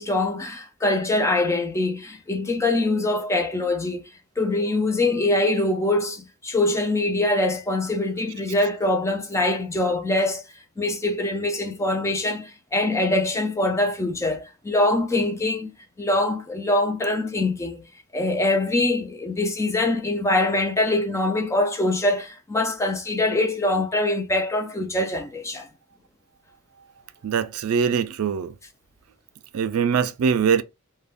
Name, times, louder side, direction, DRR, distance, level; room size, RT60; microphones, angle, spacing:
voice 1, 0.0-4.1 4.4-10.4 10.8-17.9 18.1-25.7, left 2 dB, 15° left, 0.5 m, -23 dB
voice 2, 27.2-28.5 29.5-30.6, right 6 dB, 80° right, 0.4 m, -22 dB
2.5 x 2.2 x 3.4 m
head